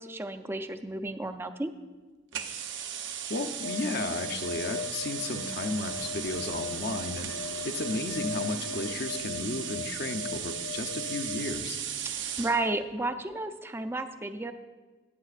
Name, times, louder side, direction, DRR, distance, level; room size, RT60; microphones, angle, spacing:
voice 1, 0.0-1.7 12.0-14.5, right 2 dB, 15° right, 9 dB, 0.4 m, -32 dB
sound 1, 2.3-12.6, right 9 dB, 70° right, 0.7 m, -37 dB
voice 2, 3.3-7.3 7.6-11.8, left 2 dB, 60° left, 6 dB, 0.7 m, -34 dB
sound 2, 3.6-11.3, left 5 dB, 85° left, 1.3 m, -39 dB
sound 3, 5.8-13.4, left 3 dB, 90° right, 2.6 m, -51 dB
14.5 x 9.3 x 2.5 m, 1.3 s
head